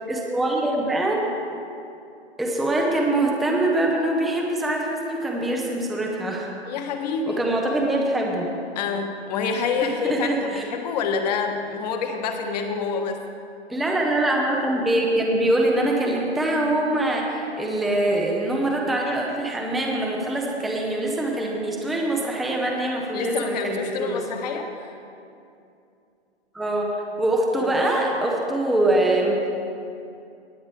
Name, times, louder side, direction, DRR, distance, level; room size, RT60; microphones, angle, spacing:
voice 1, 0.1-1.3 2.4-6.5 7.3-8.5 9.8-10.6 13.7-24.2 26.5-29.5, right 1 dB, ahead, -1 dB, 0.5 m, -23 dB
voice 2, 6.7-7.4 8.7-13.2 23.1-25.0 27.5-27.7, left 5 dB, 40° left, 5 dB, 1.2 m, -27 dB
18.5 x 9.2 x 3.4 m, 2.6 s
figure-of-eight pair, 125°, 33 cm